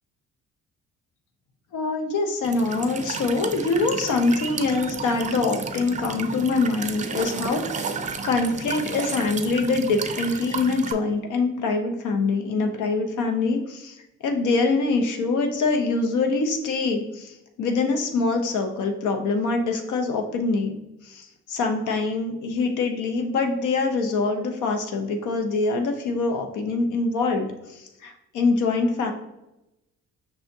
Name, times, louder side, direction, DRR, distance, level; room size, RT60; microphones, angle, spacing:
voice 1, 1.7-8.0 8.2-14.0 14.2-29.1, left 3 dB, 80° left, 4 dB, 0.7 m, -24 dB
Walk footsteps / Chirp tweet / Stream, 2.4-10.9, right 5 dB, 25° right, 0.4 m, -32 dB
5.5 x 3.4 x 2.7 m, 0.93 s
cardioid pair, 90°, 30 cm